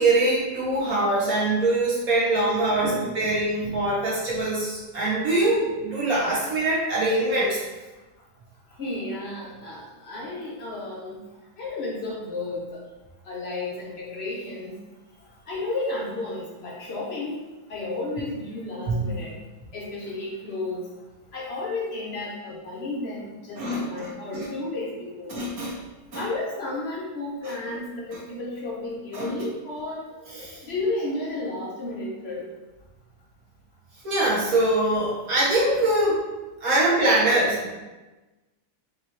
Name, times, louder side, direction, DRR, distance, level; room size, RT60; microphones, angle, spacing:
voice 1, 0.0-7.6 18.9-19.0 23.6-24.4 25.3-25.8 26.1-26.2 29.1-29.3 30.3-30.6 34.0-36.2 36.6-37.7, right 2 dB, 50° right, -7 dB, 1.6 m, -23 dB
voice 2, 8.8-11.2 11.6-12.8 13.2-14.7 15.5-19.3 19.7-20.9 21.3-25.4 26.1-30.0 30.6-32.5, left 2 dB, 80° left, -4 dB, 0.5 m, -32 dB
4.6 x 3.1 x 3.2 m, 1.1 s
omnidirectional pair, 2.1 m